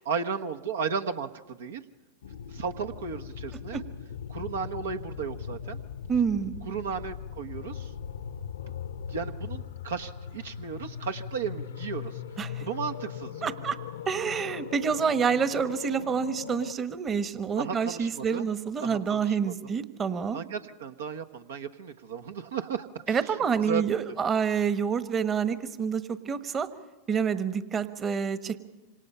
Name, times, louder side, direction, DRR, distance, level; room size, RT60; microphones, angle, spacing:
voice 1, 0.0-1.8 2.5-3.8 4.3-5.8 6.6-7.9 9.1-12.2 12.6-13.5 17.6-18.5 18.8-19.7 20.3-23.4 23.6-24.1, right 6 dB, 75° right, 6 dB, 1.2 m, -35 dB
sound 1, 2.2-16.7, left 8 dB, 75° left, 0.8 m, -39 dB
voice 2, 6.1-6.6 12.4-12.6 13.4-13.8 14.1-20.4 23.1-26.7 27.1-28.6, right 6 dB, 30° right, 12 dB, 1.4 m, -28 dB
26.5 x 26.0 x 5.6 m, 1.1 s
hypercardioid pair, 95°, 0 cm